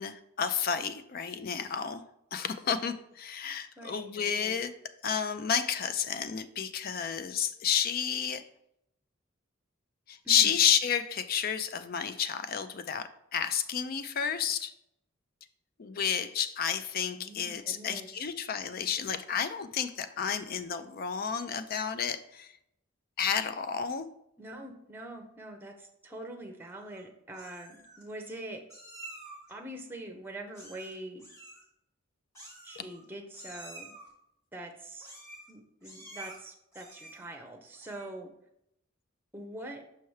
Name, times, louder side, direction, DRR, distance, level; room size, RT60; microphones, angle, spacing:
voice 1, 0.0-2.0 2.3-4.7 5.0-8.4 10.1-14.7 15.8-22.6 23.2-24.1 32.8-32.9, left 7 dB, 45° left, 11 dB, 0.4 m, -31 dB
voice 2, 3.8-4.6 10.2-10.6 17.2-18.1 24.4-28.6 29.5-31.3 32.6-34.0 34.5-35.1 35.5-38.3 39.3-39.8, right 1 dB, 10° right, 3 dB, 0.7 m, -44 dB
Meow, 26.6-27.0 27.3-28.0 28.7-29.5 30.5-30.9 31.2-31.6 32.3-33.0 33.3-34.1 35.0-35.5 35.8-36.4 36.7-37.3 37.7-38.2, right 2 dB, 15° left, 1.6 m, -49 dB
5.7 x 5.5 x 3.2 m, 0.78 s
head